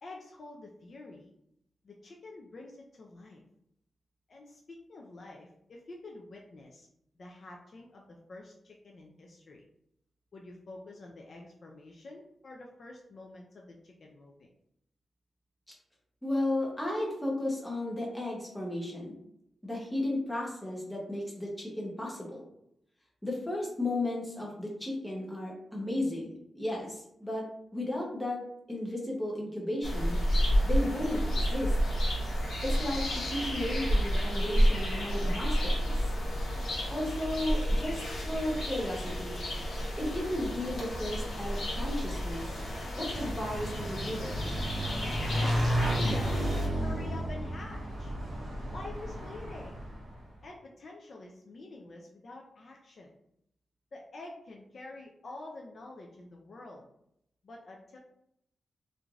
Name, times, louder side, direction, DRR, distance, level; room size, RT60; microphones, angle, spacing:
voice 1, 0.0-1.3 1.8-3.4 4.3-6.9 7.1-9.7 10.3-14.5 45.3-48.1 48.6-49.8 50.4-53.1 53.9-56.8 57.4-58.0, left 2 dB, 45° left, 0 dB, 0.3 m, -47 dB
voice 2, 16.2-19.2 19.6-22.4 23.2-27.5 27.7-28.4 28.7-30.2 30.6-31.2 31.5-31.8 32.6-36.1 36.9-39.7 40.0-42.5 43.0-44.3, left 1 dB, 5° left, -3 dB, 0.7 m, -34 dB
sound 1, 29.8-46.7, equal, 80° left, 1.0 m, -31 dB
Motorcycle / Engine, 42.9-50.2, equal, 60° right, 0.7 m, -33 dB
3.1 x 2.5 x 2.3 m, 0.78 s
wide cardioid pair, 165°, 0 cm